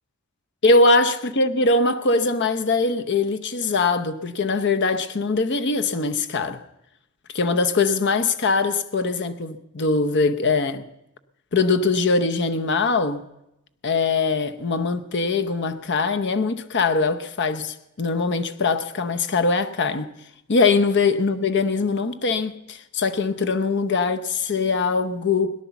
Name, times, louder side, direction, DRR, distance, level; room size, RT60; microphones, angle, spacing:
voice 1, 0.6-6.6 7.3-10.8 11.5-13.2 13.8-20.1 20.5-25.5, left 3 dB, 50° left, 0.8 m, -22 dB
18.0 x 10.5 x 7.0 m
head